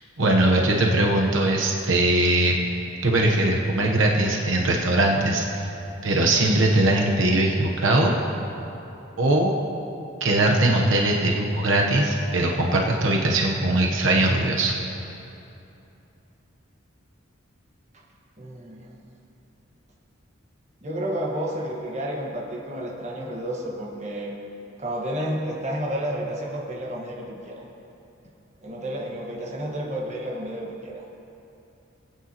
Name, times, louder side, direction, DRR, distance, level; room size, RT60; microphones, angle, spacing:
voice 1, 0.2-2.7 3.0-5.5 6.0-8.1 9.2-9.5 10.2-14.7, right 1 dB, 75° right, 0 dB, 1.0 m, -21 dB
voice 2, 18.4-19.0 20.8-24.3 24.8-27.6 28.6-31.0, equal, 35° right, -2 dB, 1.3 m, -31 dB
19.5 x 9.2 x 2.9 m, 2.9 s
head